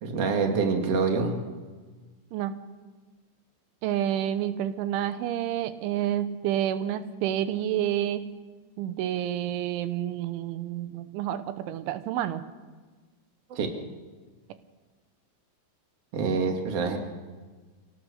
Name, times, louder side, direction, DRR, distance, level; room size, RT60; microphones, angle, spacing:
voice 1, 0.0-1.4 13.5-13.7 16.1-17.0, right 5 dB, 40° right, 3 dB, 2.5 m, -26 dB
voice 2, 3.8-8.2 8.8-12.4, right 11 dB, 90° right, 11 dB, 3.4 m, -29 dB
26.5 x 18.0 x 6.5 m, 1.4 s
omnidirectional pair, 5.3 m